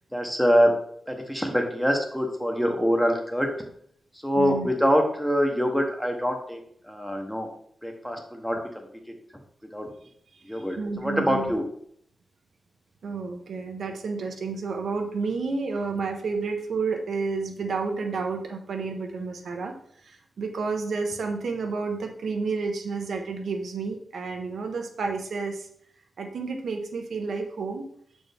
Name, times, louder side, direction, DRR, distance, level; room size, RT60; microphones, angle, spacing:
voice 1, 0.1-0.7 1.1-3.5 4.2-7.5 7.8-8.8 9.7-9.9 10.4-11.6, equal, ahead, 3 dB, 0.8 m, -24 dB
voice 2, 4.4-4.7 10.8-11.5 13.0-19.7 20.0-25.7 26.2-27.9, right 4 dB, 75° right, 4 dB, 0.7 m, -30 dB
6.9 x 4.4 x 3.4 m, 0.65 s
wide cardioid pair, 160°, 0 cm